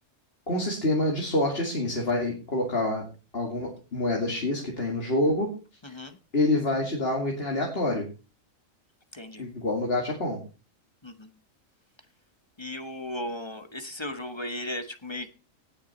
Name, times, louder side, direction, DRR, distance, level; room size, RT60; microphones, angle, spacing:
voice 1, 0.5-3.0 3.3-5.5 5.9-6.0 6.3-8.1 9.4-10.4, left 1 dB, 45° left, -1 dB, 2.6 m, -27 dB
voice 2, 5.8-6.2 9.1-9.5 11.0-11.3 12.6-15.3, left 1 dB, 20° left, 8 dB, 1.1 m, -36 dB
18.0 x 7.2 x 4.3 m, 0.33 s
omnidirectional pair, 1.4 m